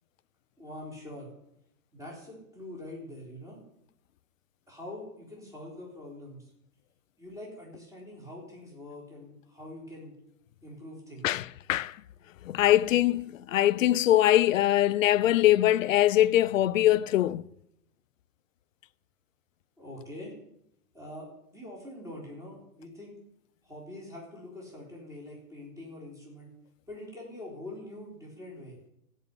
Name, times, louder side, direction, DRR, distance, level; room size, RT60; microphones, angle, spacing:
voice 1, 0.6-1.3 1.9-3.6 4.7-6.5 7.2-10.1 10.6-11.4 19.8-20.3 20.9-23.2 23.6-26.5 26.9-28.8, left 1 dB, 5° right, 3.9 m, -44 dB
voice 2, 11.2-12.0 12.4-17.5, left 13 dB, 60° left, 0.6 m, -23 dB
16.5 x 5.6 x 9.6 m
hypercardioid pair, 160°, 44 cm